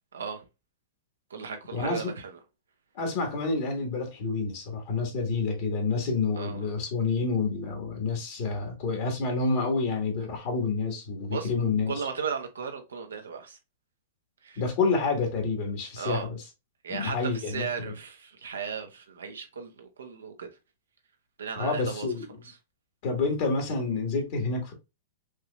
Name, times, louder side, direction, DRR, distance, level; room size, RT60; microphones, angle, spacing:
voice 1, 0.1-0.4 1.3-2.4 6.3-6.6 11.3-11.5 11.9-13.6 14.4-14.6 16.0-16.3 16.8-20.5 21.4-22.1 22.4-22.6, right 6 dB, 85° right, 0.9 m, -36 dB
voice 2, 1.7-2.1 2.9-11.9 14.6-16.4 16.9-17.9 21.6-22.4 23.0-24.7, left 4 dB, 55° left, 1.5 m, -28 dB
4.7 x 2.9 x 2.3 m
hypercardioid pair, 115°, 0 cm